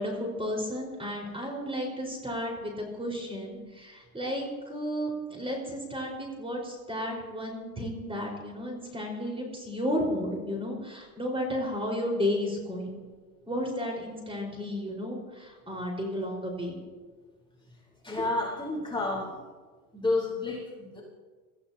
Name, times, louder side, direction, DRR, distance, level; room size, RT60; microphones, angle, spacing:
voice 1, 0.0-12.9 13.5-16.8, equal, 10° right, -1 dB, 5.0 m, -33 dB
voice 2, 18.0-19.3 19.9-21.0, left 2 dB, 10° left, -4 dB, 4.3 m, -30 dB
25.5 x 15.0 x 2.9 m, 1.4 s
supercardioid pair, 105°, 46 cm